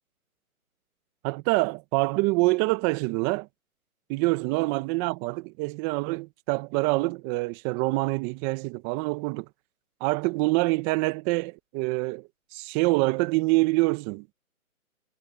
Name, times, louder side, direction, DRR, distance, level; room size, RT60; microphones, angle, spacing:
voice 1, 1.2-3.5 4.1-9.5 10.0-14.3, right 24 dB, 15° right, 1.2 m, -26 dB
hypercardioid pair, 150°, 43 cm